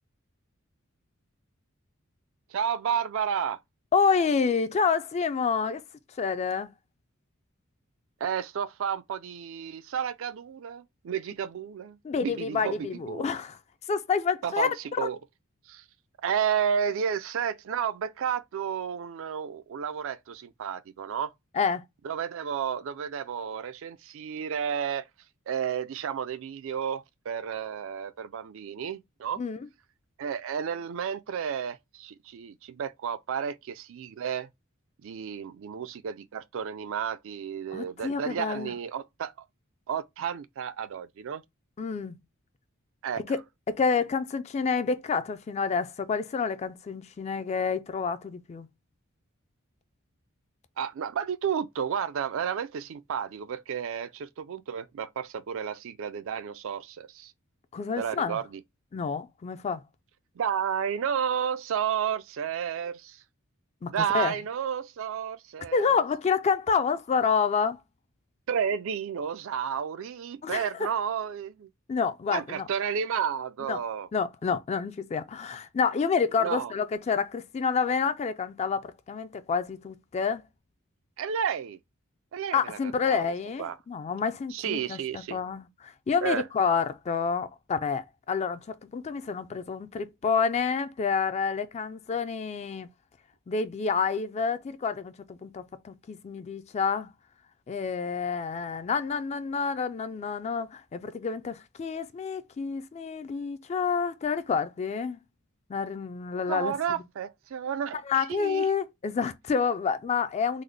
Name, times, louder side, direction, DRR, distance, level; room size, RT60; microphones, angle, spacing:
voice 1, 2.5-3.6 8.2-13.3 14.4-15.2 15.7-15.8 16.2-21.3 22.0-25.0 25.5-29.4 30.2-34.5 35.0-39.3 39.9-41.4 43.0-43.2 50.8-57.3 58.0-58.6 60.4-63.2 63.9-66.0 68.5-71.7 72.3-74.1 76.4-76.7 81.2-81.8 82.3-83.3 83.6-83.8 84.5-85.4 86.2-86.4 106.5-108.7, right 8 dB, 65° right, 0.4 m, -32 dB
voice 2, 3.9-5.8 6.2-6.7 12.0-13.6 13.9-15.1 21.5-21.8 29.4-29.7 37.7-38.7 41.8-42.2 43.2-43.4 43.7-48.7 57.7-58.4 58.9-59.8 63.8-64.3 65.7-67.8 70.4-70.7 71.9-72.7 73.7-73.8 74.1-80.4 82.5-92.9 93.5-97.1 97.7-105.2 105.7-106.7 108.1-110.6, left 5 dB, 30° left, 0.3 m, -28 dB
3.8 x 2.0 x 3.2 m
head